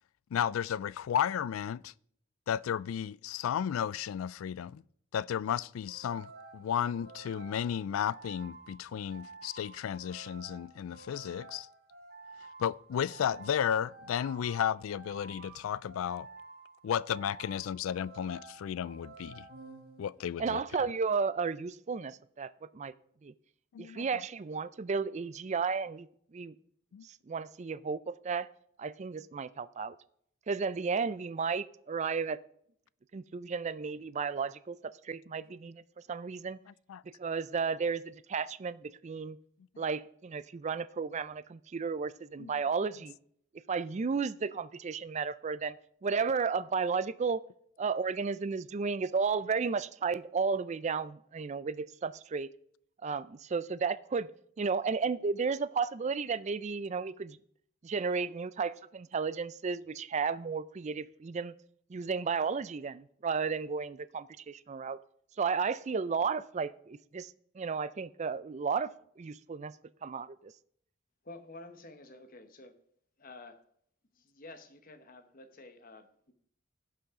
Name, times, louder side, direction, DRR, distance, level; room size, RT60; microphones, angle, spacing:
voice 1, 0.3-1.9 2.5-4.8 5.1-11.7 12.6-16.3 16.8-19.5 20.0-20.6 23.7-24.2 26.9-27.1 36.7-37.0 42.4-42.5, left 9 dB, 85° left, 0.3 m, -33 dB
sound 1, 5.9-20.4, right 3 dB, 50° right, 1.5 m, -51 dB
voice 2, 20.4-22.9 23.2-23.3 23.8-26.1 26.3-26.5 27.3-28.5 28.8-30.0 30.5-32.4 33.1-35.8 36.1-36.6 37.2-39.4 39.8-43.1 43.7-45.8 46.0-47.4 47.8-52.5 53.0-54.3 54.6-57.4 57.8-61.5 61.9-65.0 65.4-68.9 69.2-69.7 70.0-70.5, right 5 dB, 35° right, 0.4 m, -33 dB
voice 3, 71.2-72.7 73.2-73.6 74.1-76.3, left 2 dB, 45° left, 1.1 m, -50 dB
16.5 x 5.7 x 3.7 m
head